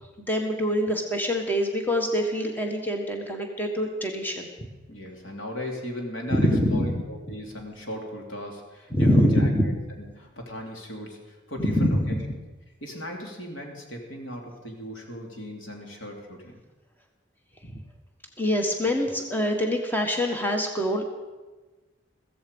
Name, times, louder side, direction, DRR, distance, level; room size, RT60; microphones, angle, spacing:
voice 1, 0.2-4.5 6.3-6.9 8.9-9.7 11.6-12.2 17.6-17.7 18.4-21.0, equal, 10° left, 2 dB, 1.5 m, -24 dB
voice 2, 4.9-12.2 12.8-16.6, equal, 90° left, 1 dB, 3.2 m, -37 dB
15.5 x 15.0 x 5.4 m, 1.2 s
head